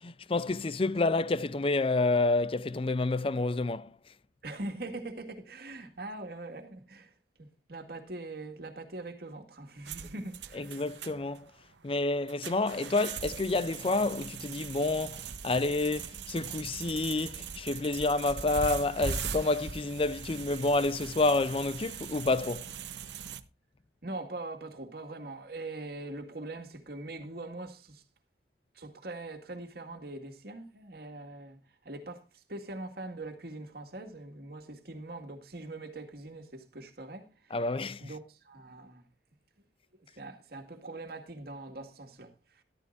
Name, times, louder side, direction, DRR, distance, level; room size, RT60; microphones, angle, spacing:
voice 1, 0.0-4.0 10.5-11.5 11.8-22.7 37.5-38.1, left 2 dB, 30° left, 0.5 m, -29 dB
voice 2, 4.4-7.1 7.4-10.8 24.0-28.0 28.7-37.6 38.0-39.0 40.2-42.6, right 2 dB, 60° right, 2.0 m, -42 dB
sound 1, 9.9-23.4, right 6 dB, 80° right, 1.0 m, -40 dB
13.0 x 13.0 x 2.6 m
head